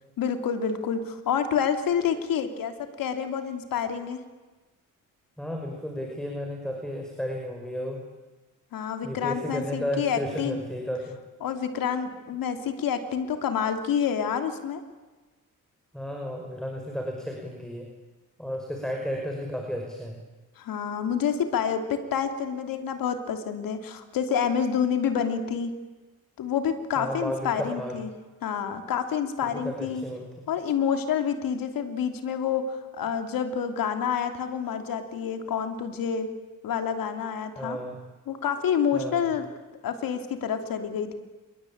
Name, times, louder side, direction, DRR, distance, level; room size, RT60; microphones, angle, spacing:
voice 1, 0.2-4.2 8.7-10.6 11.4-14.8 20.6-25.7 26.4-28.1 28.4-30.0 30.5-36.3 36.6-37.8 38.3-39.4 39.8-41.1, left 7 dB, 90° left, 7 dB, 3.2 m, -28 dB
voice 2, 5.4-8.0 9.0-11.2 15.9-17.9 18.4-20.2 27.0-28.0 29.4-30.3 37.6-38.0 38.9-39.3, equal, ahead, 2 dB, 5.7 m, -33 dB
28.0 x 22.0 x 8.8 m, 1.2 s
cardioid pair, 95°, 33 cm